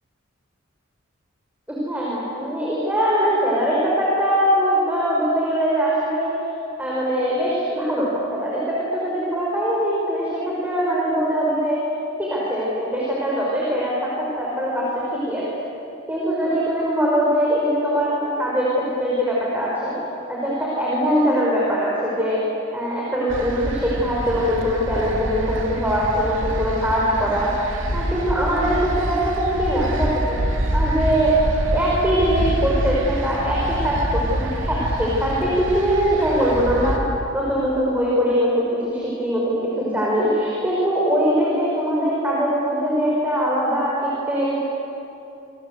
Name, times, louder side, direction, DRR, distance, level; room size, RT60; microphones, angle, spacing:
voice 1, 1.7-6.3 6.8-11.9 12.2-15.4 16.1-19.9 20.3-22.4 22.7-27.5 27.9-30.4 30.7-31.4 31.7-37.0 37.3-44.7, equal, 10° right, -5 dB, 5.2 m, -22 dB
sound 1, 23.3-37.0, equal, 65° right, 3.0 m, -26 dB
27.5 x 27.0 x 8.1 m, 2.8 s
head